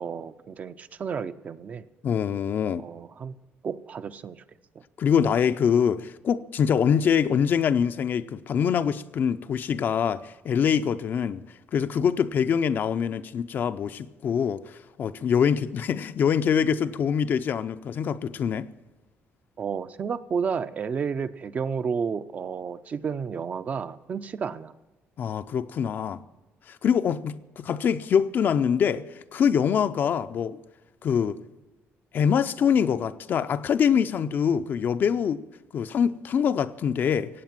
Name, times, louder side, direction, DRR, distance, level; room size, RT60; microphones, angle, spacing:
voice 1, 0.0-1.9 2.8-3.4 3.6-4.4 19.6-24.7, right 6 dB, 30° right, 0.5 m, -31 dB
voice 2, 2.0-2.8 5.0-11.4 11.7-18.7 25.2-26.2 26.7-30.6 31.0-31.4 32.1-35.4 35.7-37.3, left 7 dB, 45° left, 0.5 m, -24 dB
16.5 x 8.7 x 7.5 m
cardioid pair, 175°, 5 cm